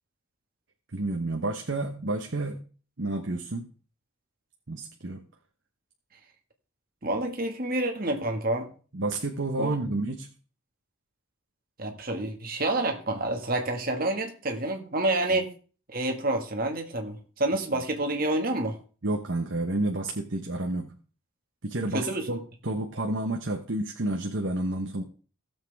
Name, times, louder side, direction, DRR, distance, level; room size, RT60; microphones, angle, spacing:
voice 1, 0.9-2.6 3.0-3.7 4.7-5.2 8.9-10.3 19.0-20.9 21.6-22.4 22.6-25.0, right 2 dB, 60° right, 3 dB, 1.1 m, -30 dB
voice 2, 7.0-8.7 9.6-9.8 11.8-15.5 15.9-18.8 21.9-22.4, right 2 dB, 45° right, 3 dB, 1.9 m, -28 dB
17.0 x 7.5 x 3.6 m, 0.39 s
head